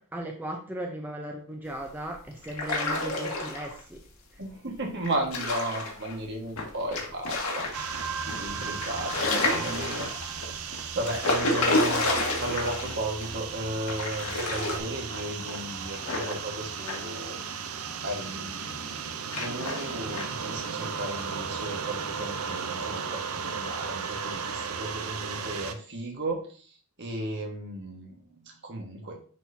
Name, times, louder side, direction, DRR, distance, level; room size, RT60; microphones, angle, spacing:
voice 1, 0.0-4.0 4.3-4.4 8.5-8.7, right 1 dB, 10° right, 1 dB, 0.7 m, -37 dB
sound 1, 2.4-3.8 5.1-6.1 7.0-8.0 8.4-8.5 8.8-10.4 11.0-12.9 13.2-13.3 13.9-14.8, left 2 dB, 70° left, 1.7 m, -28 dB
voice 2, 4.4-10.4 10.9-17.7 18.0-29.3, right 1 dB, 50° right, 1 dB, 1.6 m, -35 dB
Run, 6.5-13.9 14.2-14.6 14.9-17.1 17.6-18.2 18.5-18.8 19.2-20.4 20.7-21.5 21.8-22.0 22.4-22.7 23.1-23.2 23.7-23.8 24.2-24.3, left 3 dB, 90° left, 1.8 m, -41 dB
sound 2, 7.7-25.7, right 6 dB, 75° right, 0.7 m, -35 dB
10.5 x 4.3 x 2.8 m, 0.42 s
head